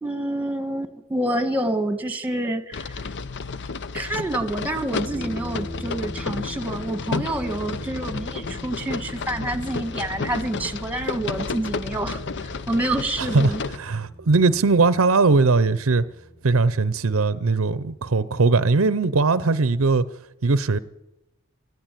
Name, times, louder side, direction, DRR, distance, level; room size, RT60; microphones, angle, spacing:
voice 1, 0.0-3.0 3.9-13.6, right 1 dB, 5° right, 1.5 m, -28 dB
sound 1, 2.7-13.8, left 4 dB, 55° left, 0.7 m, -32 dB
sound 2, 5.0-18.1, left 1 dB, 35° left, 6.4 m, -42 dB
voice 2, 13.2-16.0 16.4-20.1 20.4-20.8, right 3 dB, 65° right, 0.7 m, -20 dB
20.5 x 14.5 x 9.1 m
head